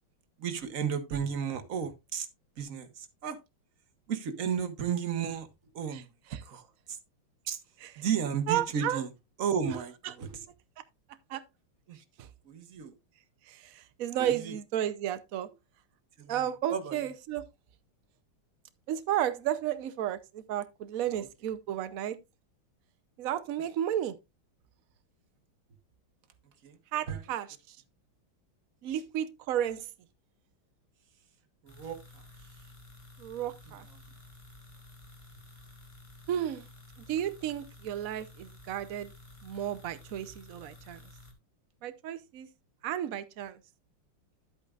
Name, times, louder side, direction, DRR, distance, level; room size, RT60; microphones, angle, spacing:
voice 1, 0.4-2.3 2.6-3.4 4.1-5.5 5.7-6.1 6.5-7.0 7.4-7.6 8.0-9.1 9.4-10.4 11.9-12.0 12.4-12.9 14.2-14.5 16.2-16.3 16.7-17.1 21.1-21.3 26.6-26.8 27.1-27.2 28.9-29.0 31.6-32.2, right 7 dB, 50° right, 1.2 m, -33 dB
voice 2, 8.5-9.0 10.0-10.1 11.3-11.4 12.2-12.3 13.4-15.5 16.3-17.4 18.9-22.2 23.2-24.2 26.9-27.8 28.8-29.9 33.2-33.9 36.3-36.7 37.1-39.1 39.4-41.0 41.8-42.5 42.8-43.6, right 11 dB, 90° right, 0.7 m, -33 dB
sound 1, 31.7-41.3, left 2 dB, 15° left, 1.4 m, -53 dB
11.5 x 8.3 x 2.4 m
omnidirectional pair, 2.3 m